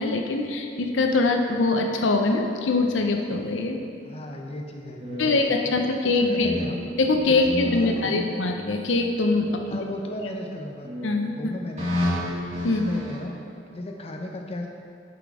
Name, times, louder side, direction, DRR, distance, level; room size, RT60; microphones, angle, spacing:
voice 1, 0.0-3.8 5.2-6.5 7.0-9.8 11.0-11.3 12.6-12.8, left 3 dB, 85° left, 3 dB, 0.7 m, -23 dB
voice 2, 4.0-5.7 6.1-6.8 7.2-8.3 9.7-10.9 11.3-12.3 12.7-13.3 13.7-14.7, left 1 dB, 35° left, 1 dB, 0.7 m, -35 dB
sound 1, 5.0-6.7 7.0-8.6 9.3-10.2 10.8-11.2 11.8-13.2, left 1 dB, 40° right, 2.0 m, -31 dB
6.8 x 6.1 x 4.9 m, 2.4 s
head